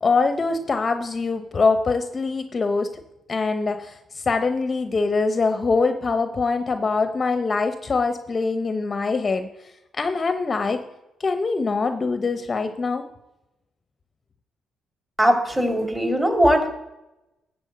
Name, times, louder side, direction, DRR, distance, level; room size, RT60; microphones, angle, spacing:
voice 1, 0.0-2.9 3.3-9.5 9.9-10.8 11.2-13.0, left 4 dB, 35° left, 8 dB, 0.8 m, -23 dB
voice 2, 15.2-16.7, equal, 15° right, 4 dB, 2.6 m, -19 dB
13.0 x 4.5 x 7.9 m, 0.90 s
cardioid pair, 90°, 0 cm